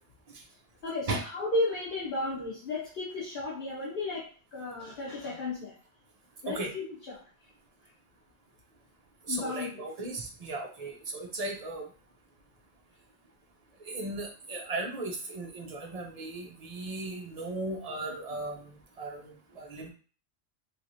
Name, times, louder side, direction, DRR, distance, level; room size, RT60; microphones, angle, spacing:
voice 1, 0.8-5.7 6.4-7.5 9.3-9.8, left 2 dB, 50° left, -6 dB, 1.0 m, -34 dB
voice 2, 9.3-11.8 13.9-18.6 19.0-19.9, right 2 dB, 40° right, 1 dB, 0.7 m, -36 dB
3.2 x 3.0 x 2.7 m, 0.38 s
omnidirectional pair, 1.2 m